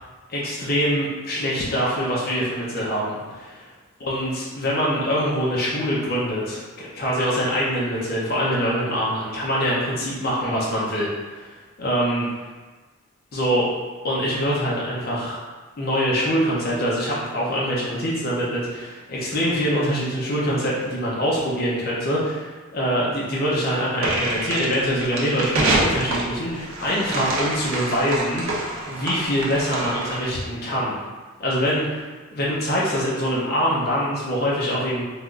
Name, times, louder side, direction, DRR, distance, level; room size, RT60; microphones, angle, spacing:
voice 1, 0.3-3.6 4.0-11.5 11.8-12.2 13.3-13.7 14.0-15.4 15.8-28.4 28.9-31.0 31.4-32.0 32.3-35.0, equal, 45° left, -6 dB, 0.6 m, -24 dB
sound 1, 24.0-30.4, right 2 dB, 80° right, 0.6 m, -26 dB
3.3 x 2.5 x 2.3 m, 1.3 s
head